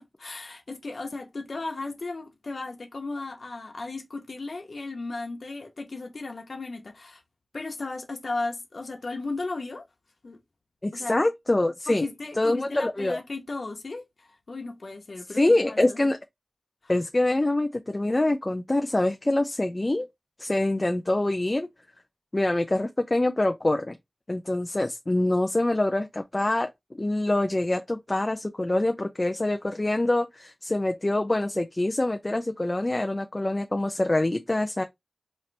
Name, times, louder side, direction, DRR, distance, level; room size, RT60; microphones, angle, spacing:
voice 1, 0.0-7.2 7.5-9.9 10.2-10.4 10.9-11.2 11.9-16.0 16.8-16.9, left 3 dB, 75° left, 0.7 m, -35 dB
voice 2, 10.8-12.0 12.4-13.2 15.3-16.2 16.9-20.1 20.4-21.7 22.3-24.0 24.3-26.7 26.9-34.8, left 2 dB, 35° left, 0.4 m, -25 dB
4.1 x 2.5 x 3.2 m
wide cardioid pair, 65°, 0 cm